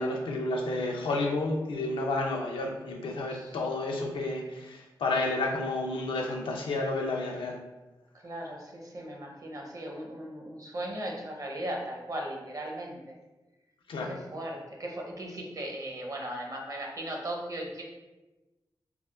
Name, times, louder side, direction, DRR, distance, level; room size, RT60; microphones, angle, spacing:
voice 1, 0.0-7.6 13.9-14.2, left 2 dB, 85° left, 1 dB, 0.4 m, -31 dB
voice 2, 8.1-13.2 14.0-17.8, right 1 dB, 40° right, 0 dB, 0.7 m, -37 dB
3.3 x 2.0 x 2.3 m, 1.1 s
cardioid pair, 45°, 9 cm